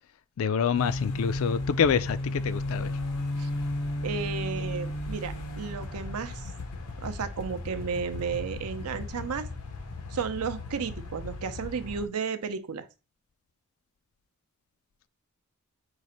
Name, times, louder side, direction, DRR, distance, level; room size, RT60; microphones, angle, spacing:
voice 1, 0.4-2.9, left 7 dB, 65° left, 0.3 m, -26 dB
sound 1, 0.7-12.1, left 1 dB, 90° left, 0.8 m, -34 dB
voice 2, 4.0-6.5 7.0-9.5 10.1-12.9, right 6 dB, 85° right, 0.5 m, -33 dB
4.7 x 2.5 x 4.2 m
head